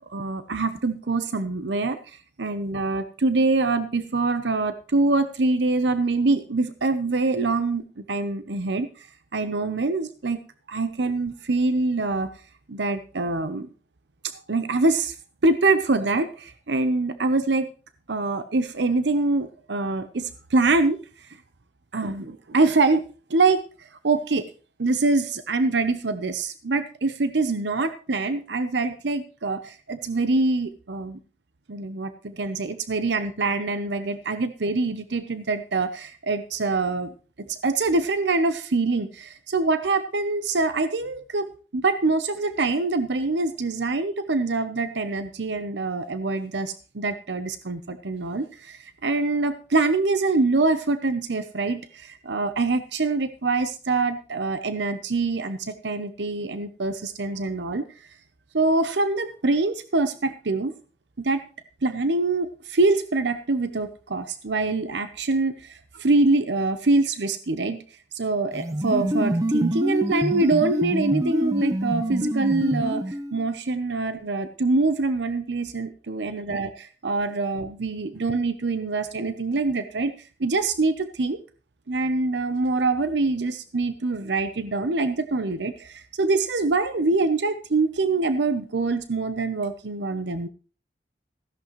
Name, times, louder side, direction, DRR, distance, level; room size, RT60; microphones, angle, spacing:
voice 1, 0.1-2.0 2.4-8.9 9.3-10.4 10.7-12.3 12.7-13.7 14.5-15.1 15.4-17.7 18.1-21.0 21.9-23.0 23.3-24.5 24.8-31.2 31.7-57.9 58.5-60.7 61.2-61.4 61.8-67.8 68.1-80.1 80.4-81.4 81.9-90.5, right 3 dB, 80° right, 11 dB, 0.8 m, -24 dB
sound 1, 68.5-73.4, equal, 20° right, 0.6 m, -26 dB
15.0 x 11.0 x 3.1 m, 0.37 s
head